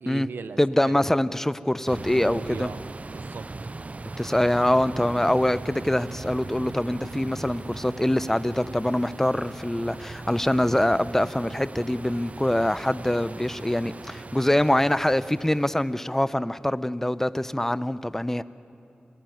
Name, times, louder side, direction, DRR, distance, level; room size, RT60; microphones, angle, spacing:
voice 1, 0.0-1.1 2.1-3.5, right 5 dB, 85° right, 12 dB, 0.8 m, -39 dB
voice 2, 0.6-2.7 4.2-18.4, left 1 dB, 10° left, 15 dB, 0.7 m, -24 dB
sound 1, 1.9-16.1, right 3 dB, 45° right, 0.6 m, -39 dB
27.0 x 17.5 x 9.2 m, 2.8 s
cardioid pair, 45°, 3 cm